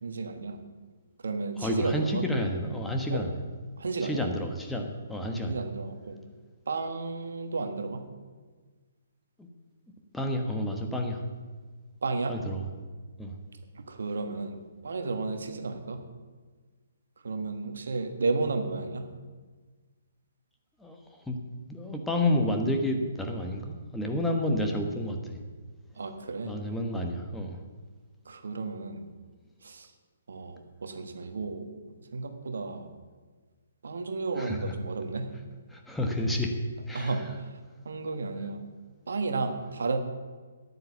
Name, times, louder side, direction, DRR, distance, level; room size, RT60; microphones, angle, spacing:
voice 1, 0.0-0.6 1.2-2.2 3.1-3.2 3.8-4.2 5.5-6.2 6.7-8.0 12.0-12.4 13.9-14.6 14.8-16.0 17.2-19.1 26.0-26.6 28.3-29.0 29.6-29.9 30.3-31.7 32.1-32.9 33.8-35.3 36.9-37.3 37.8-38.6 39.1-40.0, right 3 dB, 65° right, 7 dB, 1.3 m, -32 dB
voice 2, 1.6-3.3 4.0-5.6 9.4-9.5 10.1-11.2 12.3-12.6 13.2-13.3 20.8-21.0 21.3-21.4 21.7-25.4 26.4-27.6 34.4-34.8 35.7-36.5 36.9-37.3, left 1 dB, 5° left, 2 dB, 1.3 m, -30 dB
10.0 x 9.3 x 7.0 m, 1.4 s
figure-of-eight pair, 130°, 0 cm